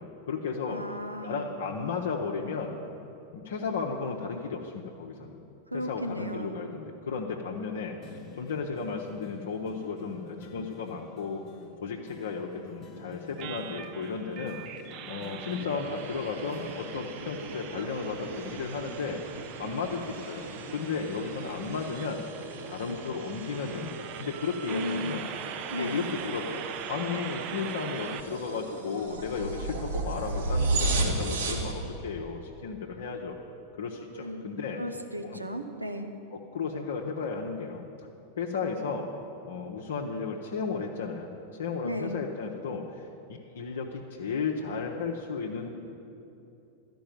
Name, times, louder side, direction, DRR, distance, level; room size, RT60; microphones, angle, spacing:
voice 1, 0.0-0.8 1.2-2.8 3.3-5.4 5.7-11.4 11.8-19.2 19.6-22.2 22.7-25.3 25.8-26.6 26.9-33.3 33.8-34.8 35.2-35.4 36.3-37.8 38.4-39.1 39.4-41.3 41.6-45.7, left 5 dB, 60° left, 0 dB, 0.7 m, -34 dB
voice 2, 0.6-1.5 5.7-6.7 24.6-25.3 25.7-26.0 34.1-34.5 34.8-36.1 41.8-42.2, equal, 85° right, 4 dB, 0.8 m, -35 dB
sound 1, 8.0-19.6 20.0-21.9 22.4-22.5, left 6 dB, 30° left, 0.9 m, -50 dB
sound 2, 13.4-28.2, right 9 dB, 40° right, 0.5 m, -42 dB
sound 3, 15.4-31.7, right 2 dB, 65° right, 1.8 m, -36 dB
12.5 x 5.3 x 9.0 m, 2.7 s
figure-of-eight pair, 90°, 0 cm